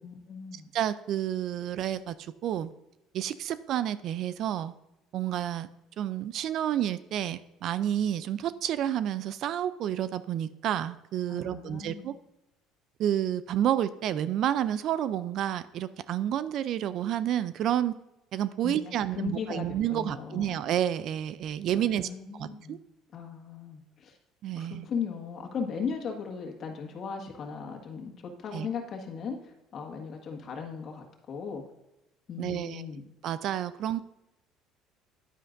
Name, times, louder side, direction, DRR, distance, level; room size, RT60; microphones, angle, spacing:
voice 1, 0.0-0.7 11.3-12.1 18.6-20.6 21.7-22.8 23.1-24.2 24.6-31.6 32.3-33.0, left 6 dB, 45° left, 2 dB, 1.7 m, -37 dB
voice 2, 0.7-2.7 3.1-4.7 5.1-5.7 6.0-12.1 13.0-17.9 18.3-22.8 24.4-24.9 28.5-28.7 32.4-32.9 33.2-34.0, right 11 dB, 60° right, 15 dB, 0.4 m, -30 dB
10.0 x 9.6 x 2.6 m, 0.92 s
cardioid pair, 110°, 0 cm